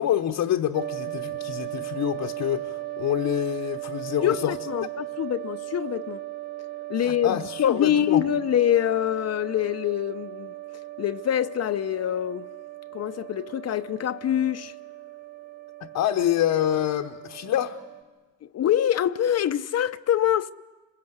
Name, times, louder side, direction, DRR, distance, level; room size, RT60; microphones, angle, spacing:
voice 1, 0.0-4.6 7.0-8.2 15.8-17.8, left 11 dB, 75° left, 1.1 m, -26 dB
sound 1, 0.7-18.0, right 16 dB, 30° right, 1.8 m, -37 dB
voice 2, 4.2-6.2 6.9-10.5 11.0-12.5 12.9-14.7 18.5-20.5, left 10 dB, 55° left, 0.7 m, -25 dB
26.0 x 22.5 x 8.0 m
cardioid pair, 90°, 30 cm